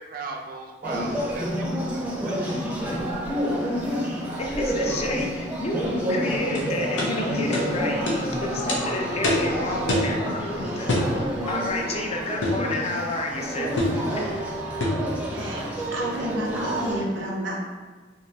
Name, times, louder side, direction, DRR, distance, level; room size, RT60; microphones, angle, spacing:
voice 1, 0.1-1.6 1.9-2.5, right 3 dB, 50° right, 1 dB, 0.5 m, -37 dB
sound 1, 0.8-17.0, equal, 10° right, 0.6 m, -29 dB
voice 2, 4.4-13.7 14.1-14.2, left 2 dB, 35° left, 1 dB, 0.4 m, -30 dB
sound 2, 5.5-11.8, left 1 dB, 60° left, 1.3 m, -39 dB
sound 3, 6.6-6.7 7.0-7.1 7.5-7.7 8.1-8.2 8.7-8.8 9.2-9.5 9.9-10.1 10.9-11.1 12.4-12.7 13.8-14.0 14.8-15.1, left 1 dB, 90° left, 0.7 m, -24 dB
voice 3, 15.2-17.6, equal, 85° right, -2 dB, 0.8 m, -31 dB
3.8 x 2.8 x 2.8 m, 1.4 s
head